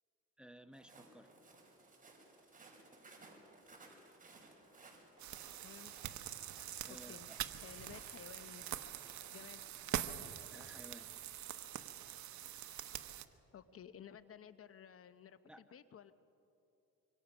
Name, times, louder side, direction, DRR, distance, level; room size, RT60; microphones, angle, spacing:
voice 1, 0.4-1.3 6.8-7.4 10.5-11.1 15.4-15.6, equal, 5° right, 9 dB, 1.0 m, -56 dB
Walk footsteps, 0.7-9.8, right 3 dB, 25° right, 5.4 m, -61 dB
sound 1, 5.2-13.3, right 11 dB, 70° right, 1.0 m, -45 dB
voice 2, 6.9-7.3 7.6-8.7 9.3-10.0 13.5-16.1, left 8 dB, 50° left, 13 dB, 0.8 m, -55 dB
25.5 x 24.5 x 6.1 m, 2.9 s
cardioid pair, 90°, 30 cm